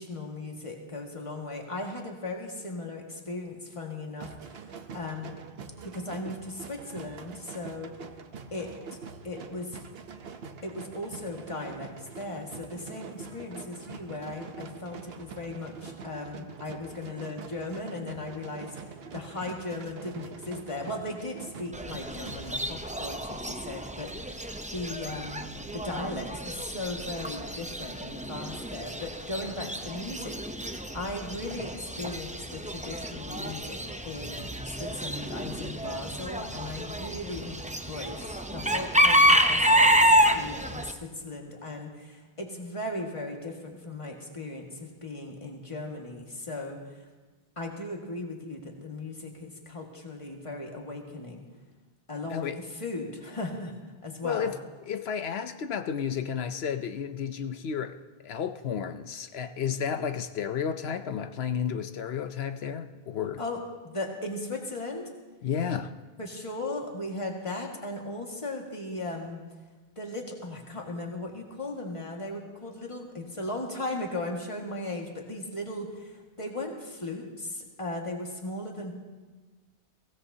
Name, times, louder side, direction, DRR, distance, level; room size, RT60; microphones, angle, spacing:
voice 1, 0.0-5.4 5.8-7.9 8.5-9.0 9.2-9.8 10.6-25.4 25.7-37.6 37.9-47.1 47.6-51.4 52.1-53.7 54.0-54.5 63.4-65.1 66.2-69.4 70.0-78.9, left 2 dB, 30° left, 0 dB, 1.9 m, -37 dB
sound 1, 4.2-22.5, right 5 dB, 65° right, 1.0 m, -44 dB
Chicken rooster / Bird, 21.7-40.9, equal, 10° right, 0.5 m, -28 dB
voice 2, 54.2-54.6 54.9-58.0 58.2-63.4 65.4-65.9, left 7 dB, 75° left, 9 dB, 0.9 m, -32 dB
23.0 x 16.5 x 2.8 m, 1.3 s
omnidirectional pair, 1.1 m